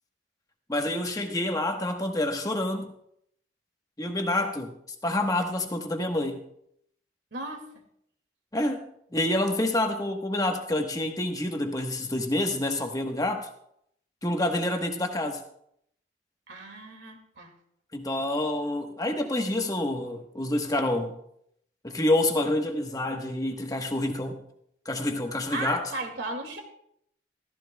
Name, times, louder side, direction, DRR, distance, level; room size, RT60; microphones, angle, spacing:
voice 1, 0.7-2.9 4.0-4.7 5.0-6.4 8.5-8.8 9.1-13.5 14.2-15.4 17.9-21.1 21.8-24.4 24.8-25.9, left 1 dB, 20° left, 4 dB, 1.1 m, -27 dB
voice 2, 7.3-7.7 16.5-17.5 25.5-26.6, right 2 dB, 80° right, 4 dB, 2.1 m, -35 dB
14.5 x 14.5 x 2.2 m, 0.73 s
head